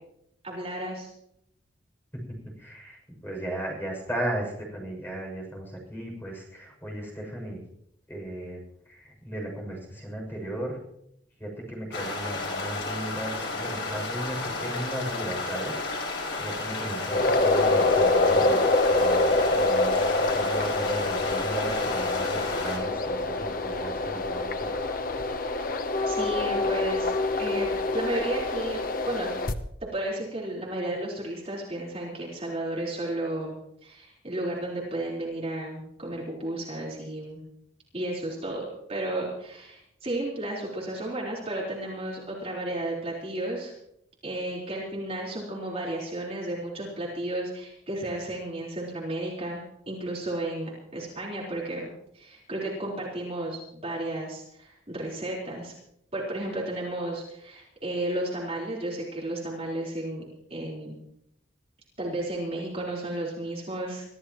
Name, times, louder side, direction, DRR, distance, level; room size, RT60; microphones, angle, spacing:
voice 1, 0.4-1.1 25.6-25.7 26.1-27.1 27.4-28.8 29.1-29.3 29.8-33.6 33.8-37.4 37.9-43.7 44.2-55.7 56.1-60.2 60.5-61.0 62.0-64.0, right 1 dB, 30° right, -4 dB, 4.1 m, -33 dB
voice 2, 2.1-7.6 8.1-8.6 8.9-10.8 11.4-15.9 16.4-18.6 18.9-24.7, right 1 dB, 10° left, -1 dB, 6.6 m, -36 dB
sound 1, 11.9-22.8, left 3 dB, 65° left, 5.3 m, -32 dB
sound 2, 17.1-29.5, left 2 dB, 45° left, 0.9 m, -25 dB
24.5 x 15.0 x 3.1 m, 0.75 s
head